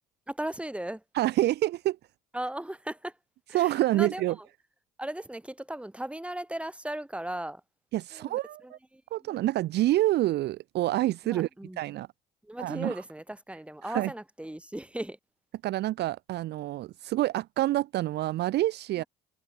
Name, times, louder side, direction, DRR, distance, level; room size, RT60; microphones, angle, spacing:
voice 1, 0.3-1.0 2.3-3.1 3.5-4.2 5.0-7.6 8.1-9.4 11.2-11.8 12.4-15.2 19.0-19.1, right 1 dB, 5° right, 4.5 m, -37 dB
voice 2, 1.1-2.0 3.5-4.4 7.9-8.8 9.1-11.5 11.8-12.1 12.6-13.0 13.8-14.1 15.6-19.0, right 15 dB, 50° right, 0.9 m, -27 dB
hypercardioid pair, 60°, 21 cm